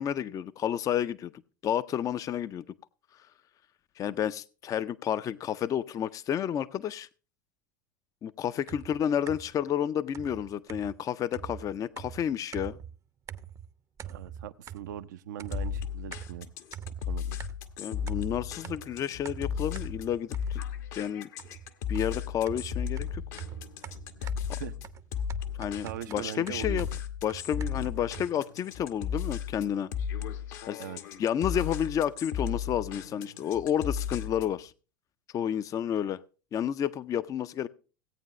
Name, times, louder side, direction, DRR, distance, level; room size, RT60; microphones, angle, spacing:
voice 1, 0.0-1.3 1.6-2.6 4.0-7.1 8.2-12.8 17.8-20.6 20.9-21.3 21.9-23.2 24.5-24.6 25.6-26.9 27.2-29.9 30.7-30.8 31.2-34.7 35.3-36.2 36.5-37.7, left 9 dB, 35° left, 0.5 m, -30 dB
sound 1, 8.7-9.6 10.1-13.0 13.3-13.7 14.0-15.1 15.4-17.8 18.1-20.8 21.4-28.3, right 9 dB, 30° right, 0.7 m, -44 dB
voice 2, 14.0-16.5 17.1-17.4 24.2-24.3 24.6-24.7 25.8-26.8 27.8-27.9 30.8-31.0, right 11 dB, 70° right, 0.6 m, -40 dB
sound 2, 15.5-34.6, left 8 dB, 60° left, 1.1 m, -35 dB
17.0 x 8.8 x 3.1 m
hypercardioid pair, 80°, 10 cm